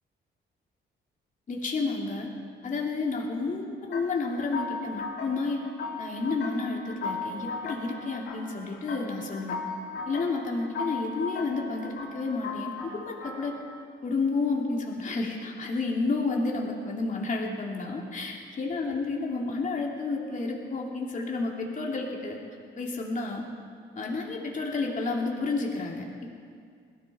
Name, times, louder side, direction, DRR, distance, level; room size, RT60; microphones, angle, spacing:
voice 1, 1.5-2.3 2.6-5.6 6.0-9.6 10.1-13.5 14.0-22.4 22.8-23.4 23.9-26.3, left 3 dB, 40° left, -1 dB, 2.8 m, -31 dB
sound 1, 3.9-13.8, left 4 dB, 70° left, 4.4 m, -37 dB
21.0 x 14.5 x 4.4 m, 2.2 s
cardioid pair, 90°, 20 cm